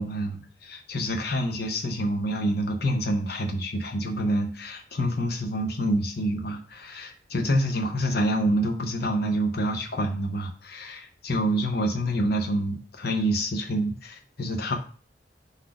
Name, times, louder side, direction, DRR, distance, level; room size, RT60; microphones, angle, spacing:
voice 1, 0.0-14.8, right 1 dB, 60° left, 3 dB, 0.8 m, -27 dB
4.0 x 2.7 x 4.7 m, 0.41 s
head